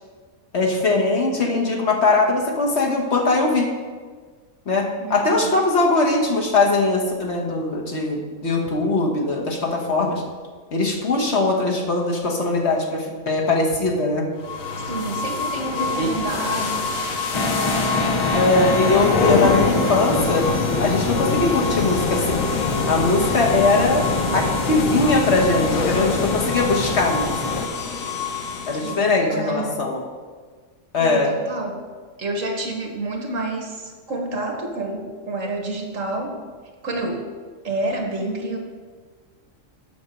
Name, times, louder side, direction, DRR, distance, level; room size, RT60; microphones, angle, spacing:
voice 1, 0.5-3.7 4.7-10.2 10.7-14.3 16.0-16.1 18.3-20.5 20.8-22.5 22.9-24.0 24.3-27.7 28.7-30.0 30.9-31.3, left 3 dB, 55° left, 0 dB, 1.5 m, -21 dB
voice 2, 5.0-5.6 14.8-17.0 28.8-29.8 31.0-31.9 32.2-36.4 36.8-37.3 37.6-38.6, right 2 dB, 75° right, 2 dB, 1.8 m, -29 dB
sound 1, 14.4-29.2, left 4 dB, 90° left, 1.4 m, -25 dB
sound 2, 17.3-27.7, left 3 dB, 35° left, 0.5 m, -26 dB
7.9 x 6.2 x 6.6 m, 1.5 s
omnidirectional pair, 1.4 m